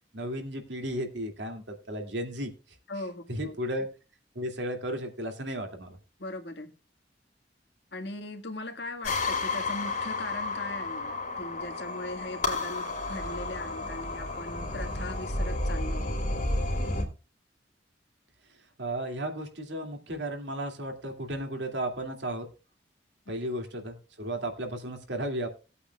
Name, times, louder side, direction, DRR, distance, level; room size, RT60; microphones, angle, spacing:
voice 1, 0.1-2.5 3.3-3.9 4.3-6.0 18.8-22.5 23.3-25.5, right 1 dB, 85° right, 2.4 m, -34 dB
voice 2, 2.9-3.5 6.2-6.7 7.9-16.2, left 2 dB, 70° left, 1.7 m, -39 dB
sound 1, 9.0-17.0, left 2 dB, 45° left, 2.8 m, -31 dB
19.5 x 8.4 x 2.3 m
head